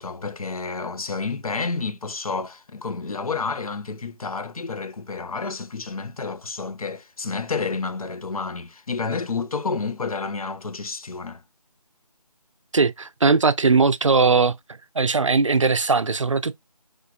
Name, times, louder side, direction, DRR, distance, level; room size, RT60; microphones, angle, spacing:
voice 1, 0.0-11.4, left 4 dB, 65° left, 0.6 m, -30 dB
voice 2, 12.7-14.6 15.0-16.6, right 4 dB, 50° right, 0.4 m, -19 dB
4.9 x 2.6 x 2.3 m
figure-of-eight pair, 175°, 20 cm